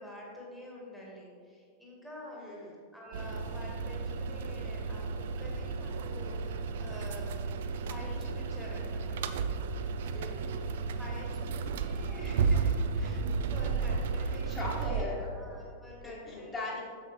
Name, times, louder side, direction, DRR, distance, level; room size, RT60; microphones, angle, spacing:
voice 1, 0.0-2.5 2.9-7.5 7.8-9.2 11.0-14.6 15.3-16.7, left 1 dB, 5° left, -4 dB, 1.4 m, -47 dB
voice 2, 2.4-2.7 10.1-10.7 14.5-15.3 16.0-16.8, left 2 dB, 20° left, -5 dB, 1.4 m, -39 dB
sound 1, 3.1-15.0, right 5 dB, 55° right, 0.3 m, -33 dB
7.0 x 6.8 x 3.0 m, 2.2 s
figure-of-eight pair, 90°, 0 cm